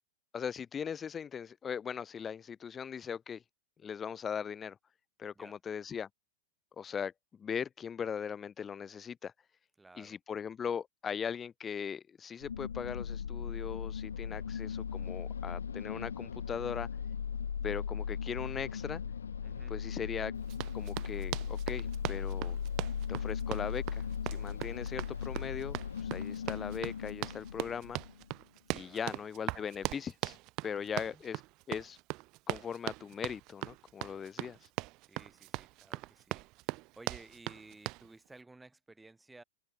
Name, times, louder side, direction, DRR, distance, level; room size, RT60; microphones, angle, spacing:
voice 1, 0.3-3.4 3.8-4.8 5.2-6.1 6.8-9.3 10.0-16.9 17.6-19.0 19.7-20.3 20.7-22.6 23.1-24.0 24.3-28.0 28.7-30.4 30.6-31.4 31.7-32.0 32.5-34.6, left 7 dB, 20° left, 1.7 m, -39 dB
voice 2, 9.8-10.2 19.4-19.8 28.7-29.2 30.7-31.2 35.0-39.4, right 2 dB, 10° right, 3.6 m, -56 dB
sound 1, 12.4-28.3, left 7 dB, 70° left, 1.4 m, -38 dB
Run, 20.5-38.1, right 23 dB, 40° right, 0.3 m, -40 dB
figure-of-eight pair, 90°, 0 cm